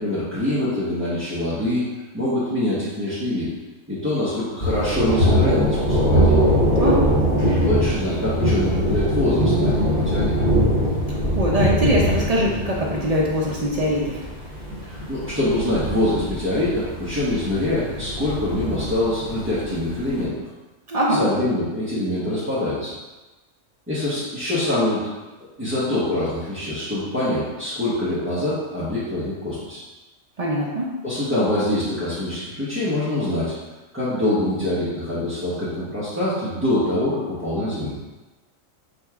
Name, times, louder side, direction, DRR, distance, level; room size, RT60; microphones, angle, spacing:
voice 1, 0.0-1.8 2.1-3.5 3.9-6.4 7.7-10.3 14.8-20.3 21.2-22.9 23.9-25.1 25.6-29.8 31.0-33.5 33.9-37.9, left 1 dB, 15° right, -12 dB, 0.7 m, -24 dB
Thunder, 4.6-20.1, equal, 45° left, 1.0 m, -22 dB
voice 2, 6.8-7.1 11.3-14.2 20.9-21.2 30.4-30.9, equal, 55° right, -4 dB, 0.4 m, -22 dB
3.8 x 2.3 x 4.5 m, 1.2 s
omnidirectional pair, 1.4 m